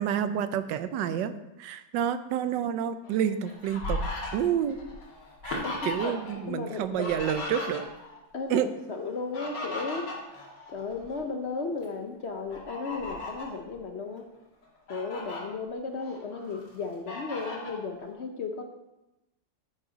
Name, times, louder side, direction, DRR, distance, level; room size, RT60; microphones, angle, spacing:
voice 1, 0.0-1.3 1.6-4.0 4.3-4.8 5.4-7.9 8.5-8.7, right 9 dB, 85° right, 12 dB, 1.3 m, -29 dB
Fowl, 3.0-6.4 6.6-8.2 9.1-11.2 11.7-11.8 12.5-13.6 14.2-14.3 14.6-15.4 15.9-16.6 17.1-17.8, left 2 dB, 80° left, 2.7 m, -37 dB
voice 2, 6.5-7.0 8.3-8.6 8.9-10.1 10.7-14.3 14.9-18.6, left 4 dB, 55° left, 4 dB, 0.8 m, -35 dB
9.8 x 8.7 x 3.9 m, 0.94 s
omnidirectional pair, 1.9 m